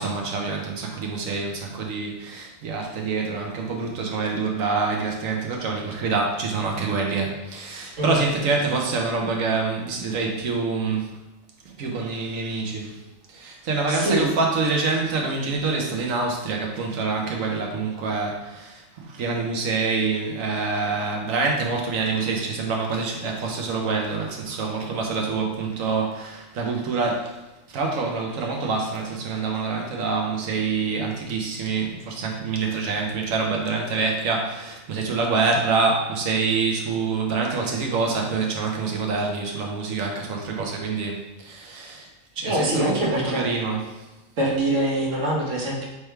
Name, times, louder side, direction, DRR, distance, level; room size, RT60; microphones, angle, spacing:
voice 1, 0.0-11.1 11.6-13.0 13.3-27.4 27.7-42.1 42.4-44.1, right 4 dB, 85° right, 1 dB, 1.2 m, -26 dB
voice 2, 13.9-14.3 42.4-43.4 44.4-45.8, right 1 dB, 70° right, -3 dB, 1.4 m, -24 dB
3.4 x 3.4 x 4.4 m, 1.1 s
omnidirectional pair, 1.4 m